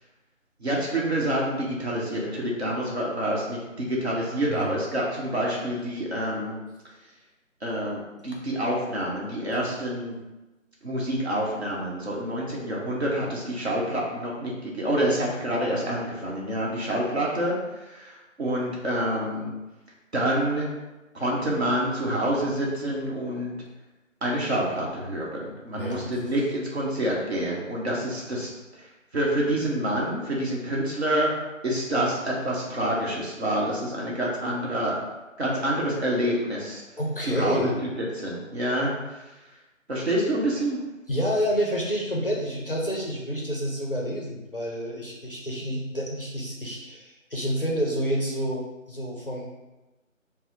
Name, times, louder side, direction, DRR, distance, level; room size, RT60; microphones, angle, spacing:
voice 1, 0.6-6.6 7.6-10.2 10.8-19.5 20.1-20.7 21.1-23.5 24.2-31.3 31.6-34.9 35.4-36.8 37.2-39.2 39.9-40.8, right 1 dB, 55° right, -4 dB, 0.9 m, -27 dB
voice 2, 25.8-26.1 37.0-37.7 41.1-49.5, equal, 45° left, -3 dB, 0.4 m, -29 dB
2.7 x 2.0 x 4.0 m, 1.1 s
figure-of-eight pair, 165°, 40 cm